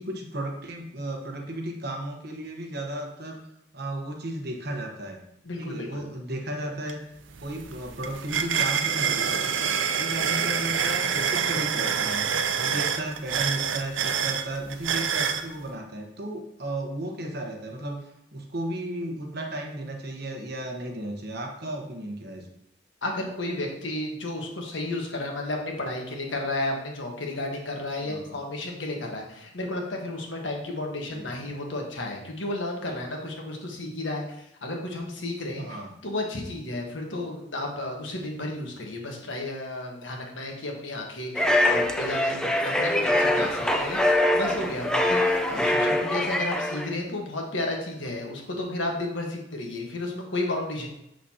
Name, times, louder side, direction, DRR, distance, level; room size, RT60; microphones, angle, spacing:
voice 1, 0.0-3.4 3.7-5.2 5.6-7.0 7.4-9.4 9.9-12.2 12.6-22.5 28.0-28.4 31.1-31.4 35.5-35.9, right 1 dB, 60° right, 2 dB, 1.1 m, -34 dB
voice 2, 5.4-6.0 23.0-50.9, left 2 dB, 85° left, 1 dB, 1.3 m, -32 dB
sound 1, 6.9-7.0 7.3-15.4, right 7 dB, 90° right, 0.5 m, -27 dB
sound 2, 41.3-46.9, left 1 dB, 5° left, 0.5 m, -24 dB
6.7 x 6.1 x 2.8 m, 0.79 s
head